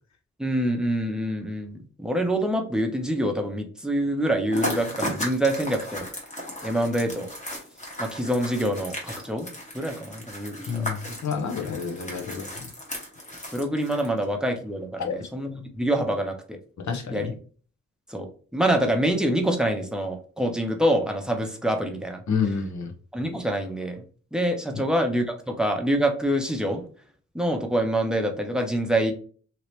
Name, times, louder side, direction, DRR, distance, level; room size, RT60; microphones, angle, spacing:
voice 1, 0.4-6.1 6.6-7.3 8.0-9.5 9.7-11.2 13.5-16.6 17.1-17.3 18.1-22.2 23.1-24.0 24.3-26.8 27.3-29.1, right 1 dB, ahead, 3 dB, 0.6 m, -26 dB
sound 1, 4.5-14.2, left 1 dB, 25° left, 1.1 m, -35 dB
voice 2, 10.7-12.7 15.0-15.2 16.8-17.3 22.3-22.9 24.7-24.8, left 6 dB, 70° left, 4 dB, 0.8 m, -29 dB
2.9 x 2.8 x 3.1 m, 0.42 s
wide cardioid pair, 125°, 30 cm